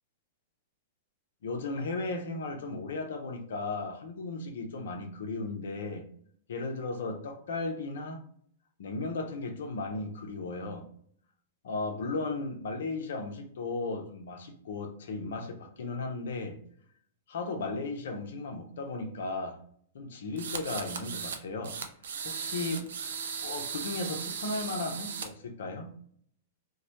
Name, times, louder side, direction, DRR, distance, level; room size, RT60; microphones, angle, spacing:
voice 1, 1.4-6.0 6.5-8.2 8.8-10.9 11.6-16.6 17.3-19.6 19.9-21.8 22.2-22.9 23.4-25.9, left 3 dB, 75° left, 0.5 m, -35 dB
sound 1, 20.4-21.4 21.6-25.3, right 6 dB, 75° right, 0.3 m, -37 dB
2.2 x 2.0 x 2.8 m
hypercardioid pair, 120°, 0 cm